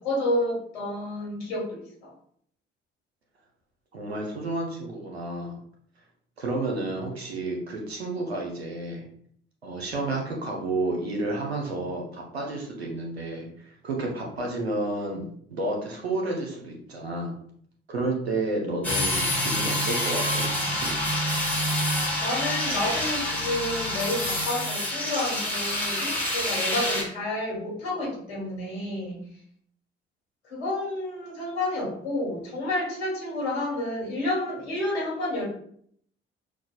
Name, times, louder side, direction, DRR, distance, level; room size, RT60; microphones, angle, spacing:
voice 1, 0.0-2.1 22.2-29.3 30.5-35.5, left 1 dB, 75° left, -4 dB, 1.4 m, -30 dB
voice 2, 3.9-5.6 6.4-9.0 9.6-17.3 17.9-20.5 20.8-20.9, right 2 dB, 85° right, 0 dB, 0.7 m, -31 dB
sound 1, 18.8-27.0, left 1 dB, 5° left, 1.3 m, -27 dB
5.9 x 2.2 x 2.4 m, 0.64 s
figure-of-eight pair, 45°, 31 cm